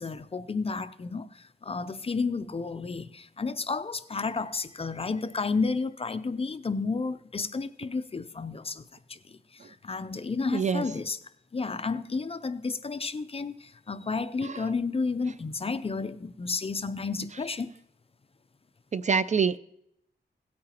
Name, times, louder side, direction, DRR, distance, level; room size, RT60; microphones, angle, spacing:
voice 1, 0.0-11.2 11.5-17.7, left 4 dB, 30° left, 0.5 m, -32 dB
voice 2, 10.5-10.8 14.4-14.7 18.9-19.6, right 6 dB, 40° right, 0.4 m, -26 dB
17.0 x 8.6 x 2.9 m
wide cardioid pair, 125°, 19 cm